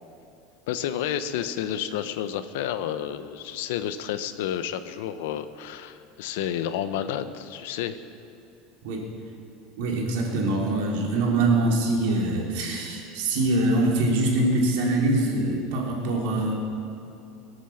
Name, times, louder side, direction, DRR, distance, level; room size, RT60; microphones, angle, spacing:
voice 1, 0.7-8.0, left 10 dB, 75° left, 11 dB, 0.8 m, -30 dB
voice 2, 9.8-16.5, right 2 dB, 65° right, -1 dB, 3.1 m, -24 dB
22.5 x 8.3 x 7.1 m, 2.7 s
cardioid pair, 180°, 0 cm